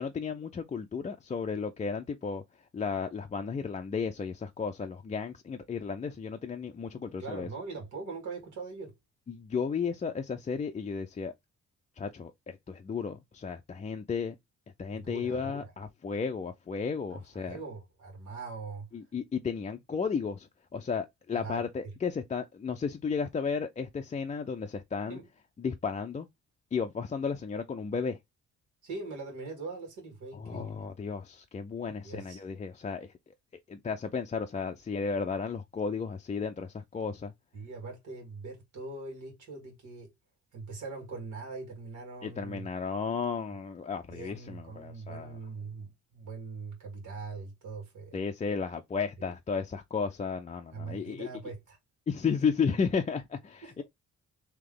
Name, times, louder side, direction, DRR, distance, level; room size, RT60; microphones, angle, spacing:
voice 1, 0.0-2.4 2.7-7.5 9.3-11.3 12.0-14.3 14.8-17.6 18.9-25.2 25.6-26.3 26.7-28.2 30.3-33.1 33.7-37.3 42.2-45.4 48.1-51.3 52.1-53.8, left 5 dB, 25° left, 0.4 m, -33 dB
voice 2, 7.2-8.9 14.9-15.7 17.1-18.9 21.3-21.6 25.1-25.2 28.8-30.9 32.0-32.4 37.5-40.1 40.5-42.7 44.1-48.2 49.2-49.3 50.7-51.8 53.6-53.7, right 4 dB, 75° right, 1.9 m, -42 dB
3.3 x 2.9 x 3.7 m
cardioid pair, 90°, 30 cm